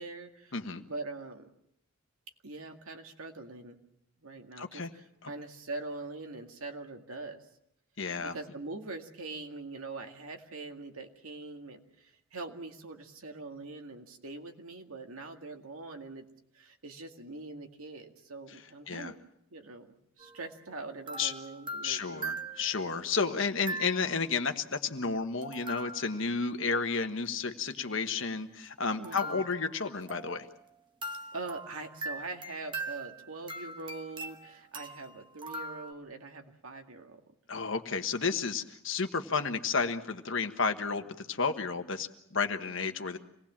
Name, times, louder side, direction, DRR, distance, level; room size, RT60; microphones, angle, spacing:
voice 1, 0.0-1.5 2.4-3.8 4.2-7.4 8.2-16.3 16.5-19.1 19.5-22.3 29.0-29.5 31.3-37.2, right 3 dB, 80° right, 4 dB, 2.1 m, -43 dB
voice 2, 0.5-0.8 4.6-4.9 5.2-5.3 8.0-8.3 18.9-19.1 21.2-21.3 21.8-30.5 37.5-43.2, left 5 dB, 60° left, 7 dB, 1.4 m, -32 dB
sound 1, 20.2-20.5 21.1-23.0 23.7-24.3 25.4-26.4 29.0-30.6 31.0-35.9, right 2 dB, 20° right, 1.2 m, -41 dB
26.5 x 19.0 x 7.4 m, 0.79 s
head